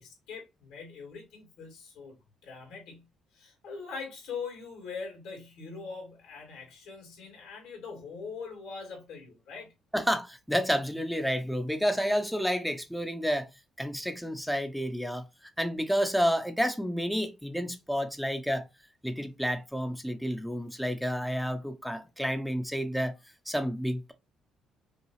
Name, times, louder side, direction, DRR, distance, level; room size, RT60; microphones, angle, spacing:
voice 1, 0.0-2.2 2.4-9.7, left 5 dB, 85° left, 2.4 m, -42 dB
voice 2, 9.9-13.5 13.8-15.2 15.6-18.7 19.0-23.1 23.5-24.1, equal, ahead, 0.7 m, -30 dB
5.6 x 2.3 x 3.1 m
supercardioid pair, 75°, 0 cm